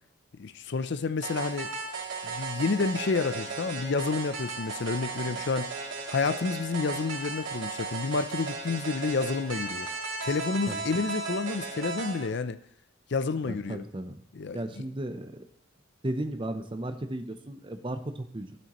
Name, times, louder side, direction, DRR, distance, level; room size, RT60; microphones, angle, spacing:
voice 1, 0.4-1.7 2.2-5.7 6.1-9.9 10.2-12.6 13.1-13.8 14.3-14.8, left 4 dB, 55° left, 0.5 m, -29 dB
sound 1, 1.2-12.3, right 4 dB, 70° right, 2.6 m, -36 dB
voice 2, 13.5-14.2 14.5-15.4 16.0-18.6, right 1 dB, 25° right, 0.6 m, -35 dB
13.0 x 7.7 x 3.0 m
head